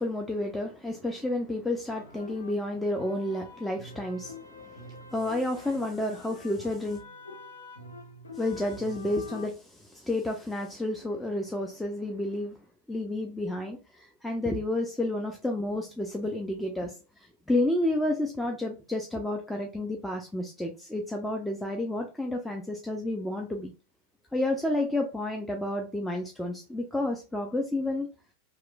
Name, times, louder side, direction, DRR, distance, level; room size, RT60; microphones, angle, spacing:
voice 1, 0.0-7.0 8.3-12.5 12.9-23.7 24.3-28.1, left 1 dB, 5° left, 2 dB, 0.4 m, -31 dB
sound 1, 1.9-9.5, left 2 dB, 70° left, 0.4 m, -46 dB
2.9 x 2.0 x 2.2 m, 0.31 s
figure-of-eight pair, 90°, 0 cm